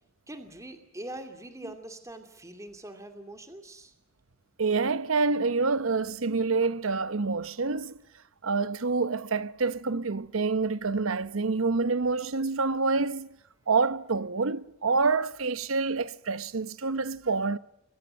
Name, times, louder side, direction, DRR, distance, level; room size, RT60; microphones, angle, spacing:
voice 1, 0.3-3.9, right 1 dB, 15° right, 2.5 m, -43 dB
voice 2, 4.6-8.0 8.4-13.3 13.7-17.6, right 4 dB, 85° right, 0.9 m, -27 dB
28.0 x 22.0 x 7.7 m
head